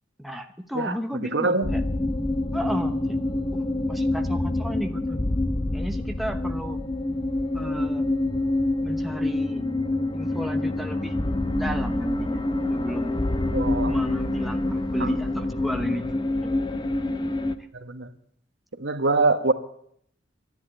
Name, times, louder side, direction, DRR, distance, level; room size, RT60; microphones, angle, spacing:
voice 1, 0.2-1.8 2.5-3.0 3.5-5.3 5.7-6.8 7.5-8.1 8.8-9.6 10.1-11.1 11.5-13.2 13.9-16.5, equal, ahead, 4 dB, 1.0 m, -33 dB
voice 2, 1.2-1.7 13.5-14.0 15.0-15.1 17.7-18.1 18.8-19.5, right 3 dB, 70° right, 8 dB, 1.4 m, -24 dB
sound 1, 1.6-17.6, left 2 dB, 25° left, 0.8 m, -26 dB
12.5 x 11.0 x 10.0 m, 0.68 s
head